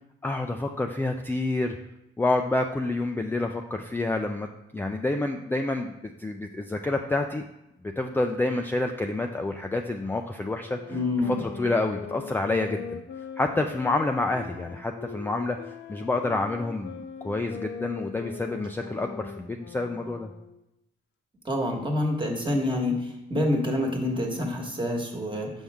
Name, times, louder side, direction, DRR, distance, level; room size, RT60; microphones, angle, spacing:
voice 1, 0.2-1.7 2.2-7.4 7.8-10.8 11.3-13.0 13.4-15.6 15.9-20.3, left 2 dB, 10° left, 3 dB, 0.4 m, -28 dB
sound 1, 10.6-20.6, left 7 dB, 70° left, 0.6 m, -41 dB
voice 2, 10.9-11.4 21.4-25.5, left 1 dB, 25° right, 1 dB, 1.4 m, -27 dB
6.1 x 5.5 x 3.5 m, 0.88 s
cardioid pair, 90°, 20 cm